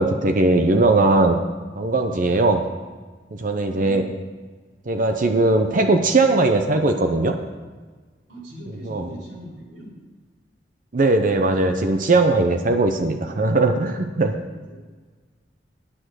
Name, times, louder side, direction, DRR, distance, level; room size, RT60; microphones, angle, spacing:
voice 1, 0.0-1.4 1.8-2.7 3.3-4.0 4.9-7.4 8.8-9.1 10.9-14.4, right 2 dB, 50° right, 5 dB, 0.7 m, -19 dB
voice 2, 8.3-9.9 14.5-14.8, right 1 dB, 85° right, -3 dB, 4.4 m, -40 dB
9.9 x 8.7 x 6.3 m, 1.4 s
head